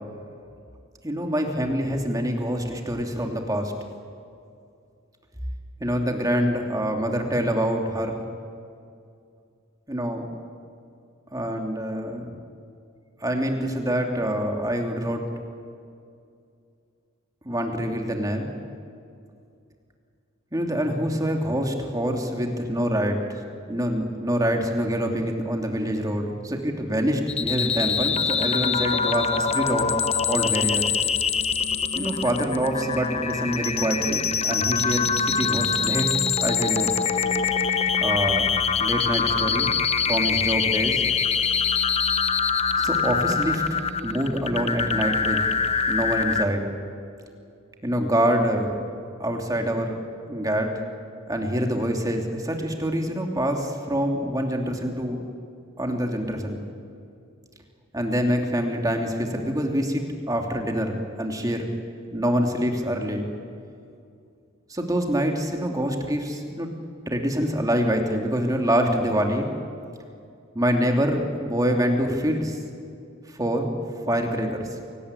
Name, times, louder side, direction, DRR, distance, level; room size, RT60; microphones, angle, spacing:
voice 1, 1.0-3.7 5.8-8.2 9.9-10.2 11.3-12.4 13.2-15.2 17.4-18.5 20.5-23.3 23.7-29.9 30.3-30.9 31.9-36.1 36.4-36.9 38.0-38.5 38.8-39.7 40.1-41.0 42.8-43.6 44.0-45.5 45.9-46.7 47.8-48.8 49.2-50.0 50.3-50.7 51.3-55.2 55.8-56.6 57.9-60.0 60.3-61.7 62.1-63.3 64.7-66.7 67.1-69.5 70.5-72.6 73.3-73.7 74.1-74.7, equal, 15° right, 2 dB, 2.7 m, -25 dB
sound 1, 27.3-46.4, left 6 dB, 30° left, 1.0 m, -24 dB
27.0 x 18.5 x 8.3 m, 2.4 s
head